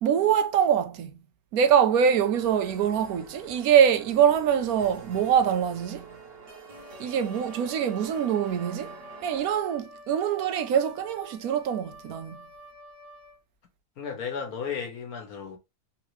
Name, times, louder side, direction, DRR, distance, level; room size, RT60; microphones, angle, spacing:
voice 1, 0.0-1.1 1.5-6.1 7.0-8.9 9.2-12.4, right 8 dB, 75° right, 1.1 m, -24 dB
sound 1, 2.1-9.5, right 3 dB, 45° right, 1.1 m, -47 dB
Wind instrument woodwind instrument, 6.7-13.4, right 1 dB, 60° left, 1.2 m, -48 dB
voice 2, 14.0-15.6, left 6 dB, 75° left, 1.5 m, -34 dB
3.8 x 3.0 x 3.1 m
omnidirectional pair, 1.6 m